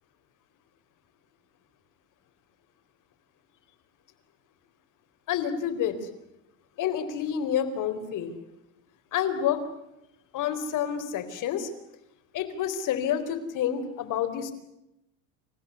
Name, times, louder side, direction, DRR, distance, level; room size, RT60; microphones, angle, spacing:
voice 1, 5.3-6.0 6.8-8.3 9.1-9.6 10.3-11.7 12.3-14.5, left 9 dB, 50° left, 9 dB, 4.2 m, -28 dB
28.5 x 15.5 x 9.6 m, 0.87 s
supercardioid pair, 130°, 41 cm